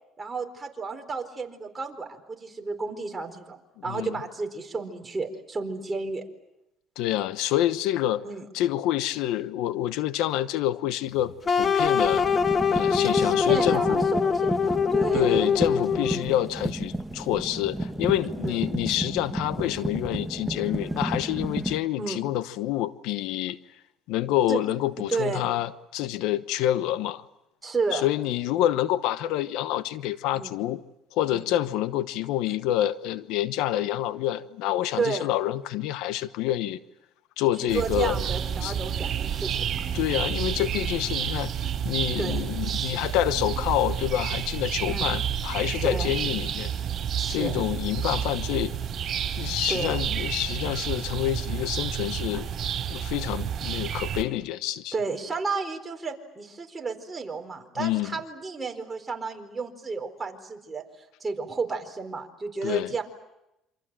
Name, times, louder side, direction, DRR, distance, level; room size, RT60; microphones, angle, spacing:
voice 1, 0.2-6.2 8.2-8.5 13.0-15.5 18.4-18.6 22.0-22.2 24.5-24.6 25.1-25.5 27.6-28.1 30.3-30.5 31.3-31.4 35.0-35.3 37.7-39.8 42.2-42.9 44.9-45.1 45.8-46.2 47.2-47.7 49.7-50.0 52.3-52.4 54.9-60.8 61.2-63.0, right 4 dB, 20° right, 4.2 m, -32 dB
voice 2, 3.8-4.2 7.0-8.2 8.5-12.2 12.7-14.1 15.1-23.6 24.1-27.2 27.9-30.8 31.1-36.8 37.4-38.2 38.6-38.7 39.9-41.5 41.8-46.7 47.3-48.7 49.4-52.5 52.9-54.9 57.8-58.2 62.6-62.9, left 13 dB, 80° left, 1.0 m, -27 dB
sound 1, 11.2-11.3 11.8-21.8, right 1 dB, 5° right, 1.5 m, -32 dB
sound 2, 11.5-16.4, left 6 dB, 30° left, 1.5 m, -23 dB
sound 3, 37.7-54.2, right 9 dB, 45° right, 4.5 m, -30 dB
28.0 x 26.0 x 7.6 m
cardioid pair, 110°, 0 cm